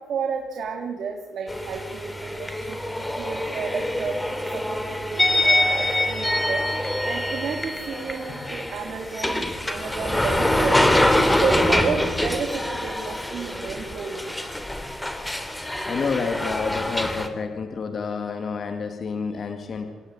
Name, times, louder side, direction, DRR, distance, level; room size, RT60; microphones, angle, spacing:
voice 1, 0.1-2.8 3.1-4.2 4.5-6.6 7.0-10.9 11.4-14.3, right 5 dB, 65° right, 2 dB, 3.3 m, -31 dB
sound 1, 1.5-17.3, left 1 dB, 10° left, 3.4 m, -25 dB
voice 2, 15.9-20.0, left 5 dB, 50° left, 6 dB, 2.4 m, -29 dB
26.5 x 17.5 x 9.9 m, 1.3 s
cardioid pair, 90°, 0 cm